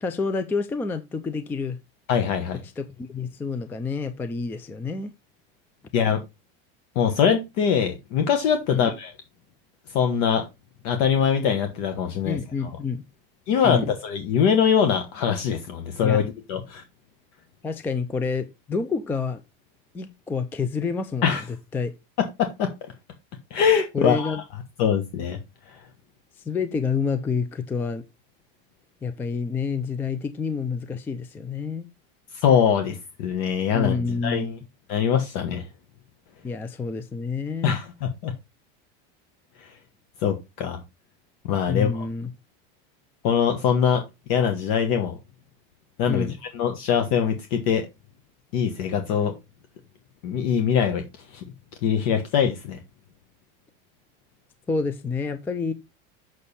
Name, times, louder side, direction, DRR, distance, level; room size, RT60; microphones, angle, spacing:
voice 1, 0.0-1.8 2.8-5.1 8.7-8.9 12.3-13.0 13.6-13.9 16.0-16.2 17.6-19.4 19.9-21.9 23.9-24.4 26.5-28.0 29.0-31.9 33.7-34.5 36.4-37.8 41.7-42.3 46.1-46.4 54.7-55.7, left 5 dB, 5° left, 0.3 m, -28 dB
voice 2, 2.1-2.6 5.9-6.2 6.9-9.1 9.9-10.4 10.8-12.4 13.5-16.2 16.5-16.8 21.2-21.4 22.2-22.7 23.5-24.4 24.8-25.4 32.3-34.6 34.9-35.6 37.6-38.3 40.2-40.8 41.4-42.1 43.2-44.0 44.3-45.2 46.0-47.9 48.5-49.3 50.2-51.0 51.3-51.4 51.8-52.8, left 7 dB, 55° left, 1.3 m, -23 dB
7.0 x 6.4 x 4.1 m
cardioid pair, 170°, 29 cm